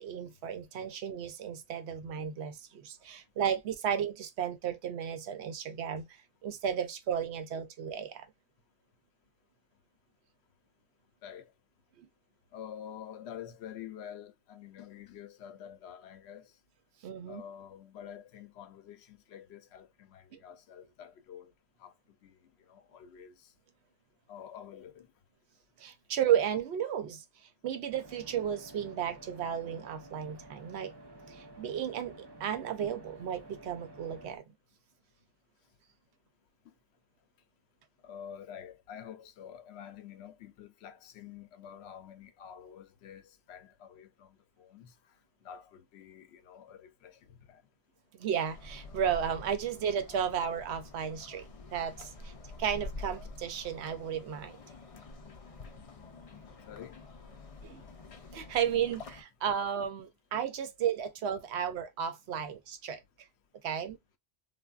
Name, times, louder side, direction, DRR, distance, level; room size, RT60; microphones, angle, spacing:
voice 1, 0.0-8.3 12.0-12.1 17.0-17.4 20.3-20.4 25.8-27.2 27.6-30.9 31.3-34.5 48.1-52.3 52.6-54.6 57.6-57.8 58.3-63.0 63.6-64.0, right 8 dB, 85° right, 0.9 m, -34 dB
voice 2, 12.5-16.6 17.3-21.5 21.8-21.9 22.2-23.5 24.3-25.1 36.6-36.7 38.0-45.0 45.4-47.6 56.7-57.0, left 9 dB, 80° left, 0.8 m, -48 dB
sound 1, 27.9-34.4, right 1 dB, 30° right, 0.5 m, -51 dB
sound 2, 48.5-59.2, left 2 dB, 50° left, 0.4 m, -47 dB
3.4 x 2.2 x 2.3 m
omnidirectional pair, 1.1 m